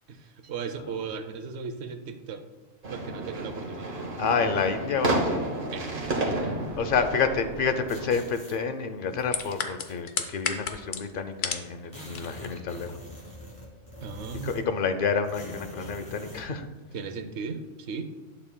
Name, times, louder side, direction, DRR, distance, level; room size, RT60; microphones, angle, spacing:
voice 1, 0.1-2.4 2.9-4.1 5.7-7.1 14.0-14.8 16.9-18.0, right 5 dB, 65° right, 8 dB, 0.9 m, -37 dB
sound 1, 2.8-8.2, right 2 dB, 45° right, 1.4 m, -31 dB
voice 2, 4.2-5.5 6.8-12.9 14.4-16.7, left 5 dB, 55° left, 9 dB, 0.7 m, -29 dB
sound 2, 7.9-8.6 9.2-10.0 10.9-11.0 11.3-11.4 11.6-14.8 15.2-16.5, equal, 15° left, 1.7 m, -44 dB
sound 3, 9.3-11.7 12.0-12.5 12.9-13.0, left 7 dB, 90° left, 1.1 m, -31 dB
11.5 x 7.0 x 2.2 m, 1.2 s
omnidirectional pair, 1.2 m